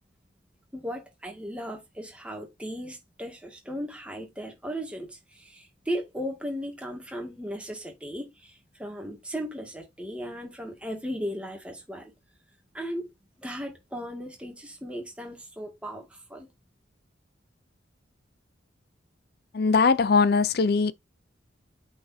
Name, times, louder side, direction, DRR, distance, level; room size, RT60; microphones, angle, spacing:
voice 1, 0.7-12.1 12.7-13.1 13.4-16.5, equal, 5° right, 2.0 m, -36 dB
voice 2, 19.5-20.9, left 4 dB, 55° left, 0.4 m, -21 dB
8.3 x 4.8 x 2.7 m
head